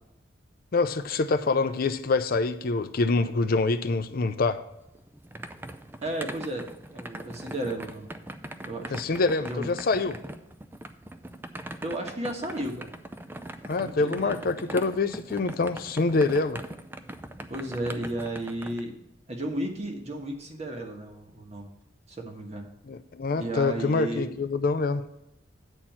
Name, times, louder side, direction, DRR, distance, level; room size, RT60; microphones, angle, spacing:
voice 1, 0.7-4.6 8.9-10.2 13.7-16.6 22.9-25.0, left 3 dB, 45° left, 10 dB, 0.4 m, -25 dB
sound 1, 4.8-18.8, right 1 dB, 10° right, 0.4 m, -41 dB
voice 2, 6.0-8.1 8.6-9.0 9.4-9.7 11.8-12.9 13.8-14.5 17.5-18.9 19.3-21.7 22.1-22.7 23.4-24.3, right 1 dB, 35° right, 2 dB, 1.4 m, -34 dB
8.9 x 4.3 x 7.2 m, 0.88 s
head